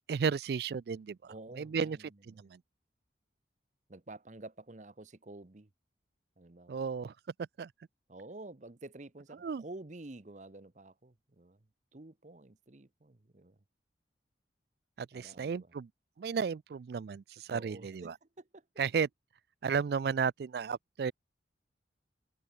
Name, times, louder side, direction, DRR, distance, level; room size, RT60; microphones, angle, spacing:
voice 1, 0.1-2.0 2.3-2.6 6.7-7.1 7.6-7.7 9.4-9.6 15.0-15.9 16.2-18.1 18.8-19.1 19.6-21.1, right 6 dB, 55° right, 0.3 m, -33 dB
voice 2, 1.3-2.5 3.9-5.7 6.4-6.9 8.1-13.6 15.1-15.7 17.5-18.7, right 2 dB, 40° right, 0.9 m, -50 dB
head